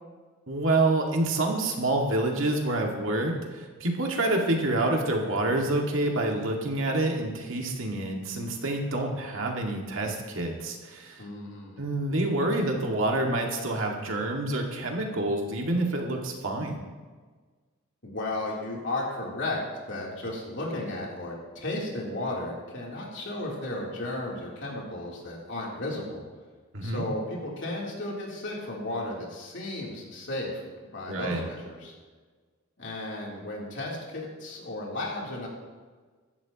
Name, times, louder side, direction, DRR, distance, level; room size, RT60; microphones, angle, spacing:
voice 1, 0.5-11.2 11.8-16.8 26.7-27.0 31.1-31.4, right 2 dB, 70° right, 1 dB, 2.0 m, -27 dB
voice 2, 11.2-11.8 18.0-19.6 19.9-26.2 26.8-30.6 30.9-31.9 32.8-35.5, left 2 dB, 60° left, -3 dB, 3.3 m, -34 dB
15.5 x 12.5 x 3.0 m, 1.4 s
head